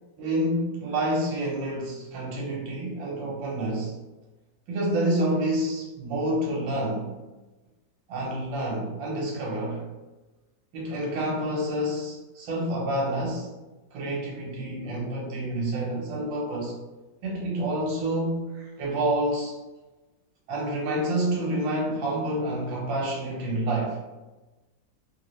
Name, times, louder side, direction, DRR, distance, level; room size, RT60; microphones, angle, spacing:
voice 1, 0.2-4.0 4.7-7.1 8.1-9.9 10.7-13.5 13.9-16.8 17.2-19.6 20.5-24.0, right 1 dB, 85° right, -2 dB, 1.7 m, -28 dB
3.7 x 2.8 x 3.1 m, 1.1 s
omnidirectional pair, 2.0 m